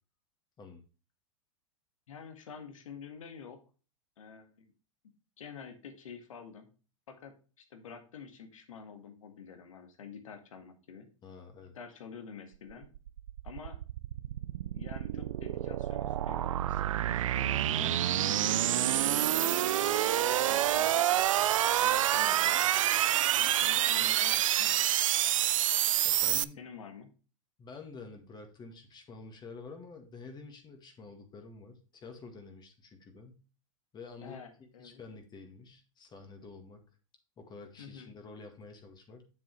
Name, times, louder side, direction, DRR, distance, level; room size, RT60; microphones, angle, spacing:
voice 1, 2.1-3.6 4.2-4.7 5.4-6.7 7.1-11.1 11.7-12.9 13.4-13.8 14.7-21.0 21.8-22.6 23.4-24.8 26.6-27.1 34.2-35.0 37.8-38.1, left 6 dB, 80° left, 7 dB, 1.8 m, -48 dB
voice 2, 11.2-11.8 26.0-26.6 27.6-33.4 33.9-34.4 34.8-36.8 37.4-39.3, left 4 dB, 25° left, 5 dB, 1.8 m, -49 dB
sound 1, 12.7-26.4, right 12 dB, 75° right, 0.4 m, -28 dB
7.5 x 6.9 x 3.2 m, 0.34 s
hypercardioid pair, 105°, 17 cm